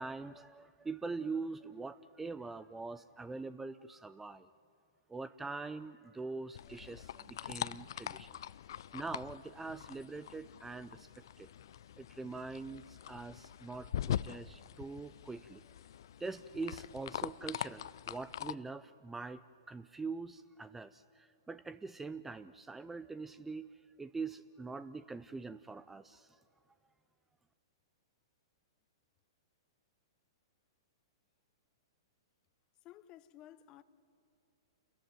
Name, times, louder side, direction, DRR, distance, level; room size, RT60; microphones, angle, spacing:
voice 1, 0.0-4.5 5.1-8.5 8.9-11.1 11.4-11.5 12.0-15.6 16.2-19.4 19.7-23.7 24.0-26.4, right 4 dB, 10° right, 0.4 m, -43 dB
sound 1, 6.5-18.5, left 10 dB, 70° left, 0.4 m, -43 dB
voice 2, 32.8-33.8, left 13 dB, 35° left, 0.9 m, -55 dB
29.0 x 14.0 x 9.1 m
hypercardioid pair, 125°, 2 cm